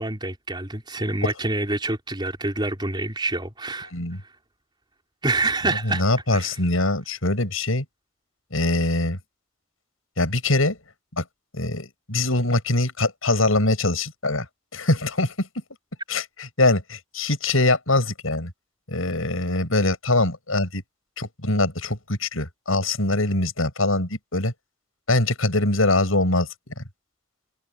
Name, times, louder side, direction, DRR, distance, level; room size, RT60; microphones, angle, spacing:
voice 1, 0.0-3.9 5.2-6.0 6.3-6.6, right 2 dB, 20° right, 4.5 m, -27 dB
voice 2, 5.9-7.9 8.5-9.2 10.2-10.8 11.2-11.3 11.5-14.5 14.7-15.5 16.1-16.2 16.6-18.5 18.9-20.8 21.2-24.5 25.1-26.5 26.8-26.9, left 2 dB, 85° left, 7.1 m, -23 dB
head